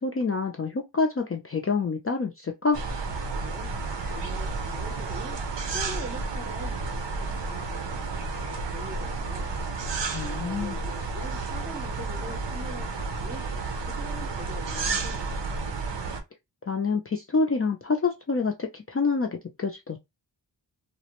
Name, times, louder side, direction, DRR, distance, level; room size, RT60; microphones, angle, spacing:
voice 1, 0.0-2.8 10.1-10.8 16.7-20.0, left 4 dB, 35° left, 0.4 m, -27 dB
sound 1, 2.7-16.2, right 3 dB, 75° right, 0.6 m, -31 dB
voice 2, 3.4-9.5 10.0-15.7, right 1 dB, 20° right, 0.6 m, -43 dB
2.5 x 2.0 x 2.9 m
wide cardioid pair, 65°, 44 cm